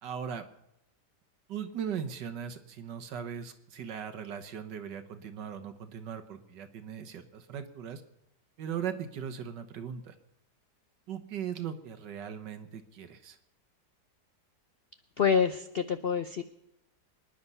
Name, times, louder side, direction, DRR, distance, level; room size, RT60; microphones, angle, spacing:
voice 1, 0.0-0.5 1.5-8.0 8.6-10.2 11.1-13.4, right 8 dB, 80° right, 8 dB, 1.8 m, -39 dB
voice 2, 15.2-16.4, left 6 dB, 70° left, 10 dB, 0.5 m, -27 dB
25.0 x 10.5 x 5.6 m, 0.85 s
omnidirectional pair, 1.9 m